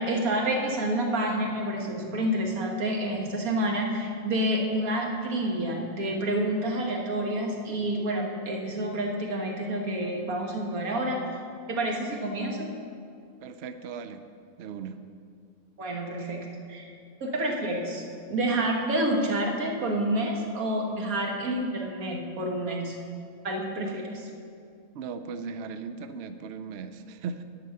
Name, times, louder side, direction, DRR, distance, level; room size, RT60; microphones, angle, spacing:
voice 1, 0.0-11.2 11.7-12.7 15.8-16.9 17.2-23.0 23.4-24.3, right 1 dB, 85° right, 0 dB, 1.8 m, -28 dB
voice 2, 13.4-14.2 14.6-15.0 24.9-27.4, right 5 dB, 65° right, 9 dB, 0.7 m, -37 dB
10.0 x 5.4 x 7.6 m, 2.4 s
omnidirectional pair, 1.5 m